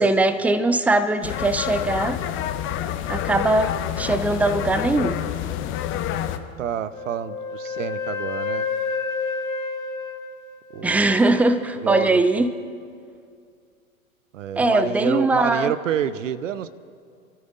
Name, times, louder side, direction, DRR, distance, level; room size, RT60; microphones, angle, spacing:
voice 1, 0.0-2.2 3.1-5.2 10.8-12.5 14.6-15.7, right 2 dB, 5° right, 11 dB, 0.5 m, -21 dB
sound 1, 1.2-6.4, left 11 dB, 30° left, 0.9 m, -28 dB
voice 2, 6.6-8.7 10.7-11.2 11.8-12.5 14.3-16.7, right 9 dB, 65° right, 16 dB, 0.9 m, -28 dB
Wind instrument woodwind instrument, 6.9-11.1, left 4 dB, 90° left, 1.7 m, -30 dB
27.5 x 13.0 x 4.0 m, 2.2 s
figure-of-eight pair, 100°, 41 cm